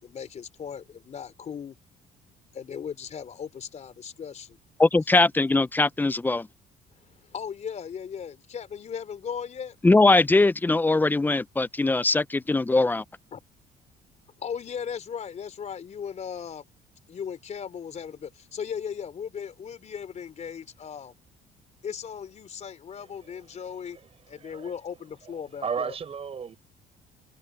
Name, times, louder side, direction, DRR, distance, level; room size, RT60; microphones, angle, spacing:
voice 1, 0.0-1.8 2.5-4.6 7.0-9.8 13.3-13.4 14.4-16.6 17.1-21.1 21.8-24.0 24.3-26.0, left 7 dB, 40° left, 4.2 m, -37 dB
voice 2, 4.8-6.5 9.8-13.0, left 2 dB, 10° left, 0.6 m, -21 dB
voice 3, 23.5-24.0 24.3-24.7 25.6-26.6, right 6 dB, 35° right, 4.9 m, -34 dB
cardioid pair, 110°, 17 cm